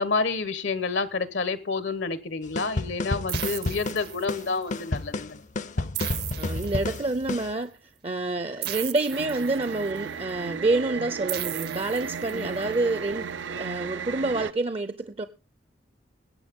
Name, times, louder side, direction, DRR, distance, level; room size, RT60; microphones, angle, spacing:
voice 1, 0.0-5.4 12.3-12.6, left 4 dB, 75° left, 1.1 m, -29 dB
sound 1, 2.6-7.5, left 2 dB, 40° left, 0.5 m, -31 dB
sound 2, 3.3-4.6 5.9-7.3 8.6-10.0 11.3-12.6, right 13 dB, 60° right, 0.8 m, -36 dB
voice 2, 6.4-7.7 8.0-13.3 13.6-15.3, right 2 dB, 30° right, 0.5 m, -28 dB
sound 3, 9.1-14.5, right 6 dB, 85° right, 0.5 m, -35 dB
21.0 x 8.4 x 3.6 m
head